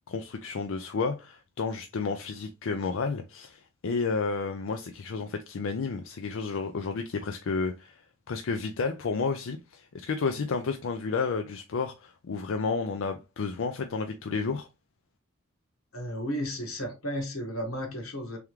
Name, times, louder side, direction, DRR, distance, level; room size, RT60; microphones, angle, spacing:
voice 1, 0.1-14.7, left 4 dB, 65° left, 0.4 m, -31 dB
voice 2, 15.9-18.4, equal, 90° left, 1.5 m, -33 dB
3.5 x 3.5 x 3.1 m
head